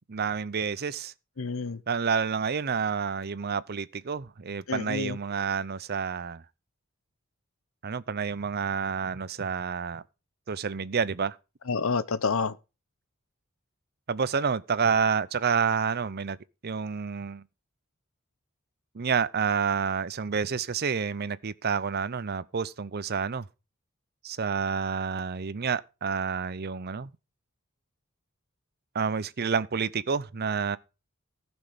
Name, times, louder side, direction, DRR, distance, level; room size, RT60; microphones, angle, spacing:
voice 1, 0.1-1.1 1.9-6.4 7.8-10.0 10.5-11.4 14.1-16.4 16.6-17.4 18.9-23.5 24.2-27.1 28.9-30.8, right 6 dB, 50° right, 0.6 m, -29 dB
voice 2, 1.4-1.8 4.7-5.2 11.7-12.5, left 4 dB, 75° left, 0.8 m, -28 dB
15.0 x 6.2 x 5.1 m
head